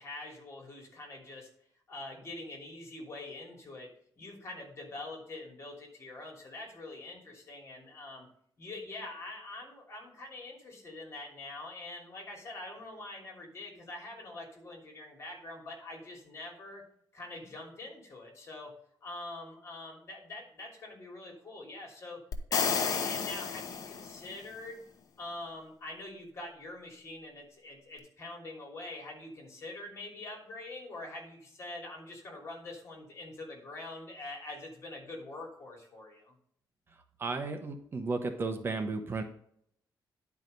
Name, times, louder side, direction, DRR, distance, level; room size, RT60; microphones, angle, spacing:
voice 1, 0.0-1.5 1.9-3.9 4.2-8.3 8.6-16.8 17.1-18.7 19.0-22.2 22.5-24.8 25.2-36.3, left 2 dB, 35° left, 1 dB, 3.0 m, -44 dB
sound 1, 22.3-24.4, left 6 dB, 55° left, 0.9 m, -31 dB
voice 2, 37.2-39.2, right 3 dB, 30° right, 5 dB, 0.9 m, -34 dB
10.5 x 4.8 x 5.3 m, 0.65 s
wide cardioid pair, 160°, 8 cm